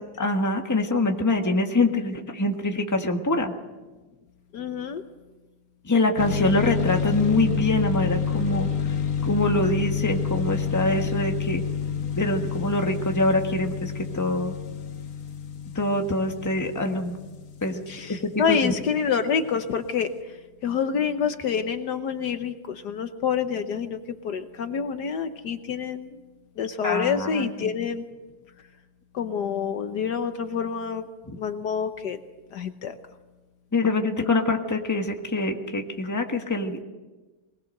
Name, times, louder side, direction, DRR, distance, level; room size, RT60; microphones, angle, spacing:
voice 1, 0.2-3.5 5.9-8.7 9.2-11.6 12.1-14.5 15.7-17.2 17.6-18.2 18.6-18.7 26.8-27.7 31.3-31.4 33.7-36.8, left 2 dB, 10° left, 3 dB, 1.4 m, -24 dB
voice 2, 4.5-5.0 17.9-20.4 20.6-26.2 26.6-28.0 29.1-31.1 31.4-32.2 32.5-32.9 34.2-34.3, left 6 dB, 65° left, 8 dB, 1.4 m, -27 dB
sound 1, 6.2-18.6, left 6 dB, 50° left, 1.3 m, -29 dB
21.5 x 20.0 x 6.6 m, 1.2 s
omnidirectional pair, 2.0 m